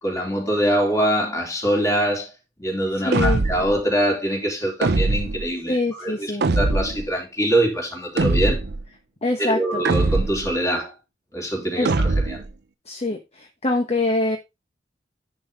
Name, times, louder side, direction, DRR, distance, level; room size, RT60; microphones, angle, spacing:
voice 1, 0.0-2.3 2.6-8.6 9.4-10.9 11.3-12.4, right 1 dB, 15° left, 3.6 m, -24 dB
voice 2, 3.0-3.4 5.6-6.5 9.2-9.8 11.8-11.9 12.9-14.4, left 2 dB, 35° left, 1.1 m, -24 dB
sound 1, 3.1-3.8 4.8-5.5 6.4-7.0 8.2-8.8 9.8-10.5 11.8-12.5, right 3 dB, 60° right, 0.7 m, -21 dB
10.5 x 5.4 x 4.0 m
head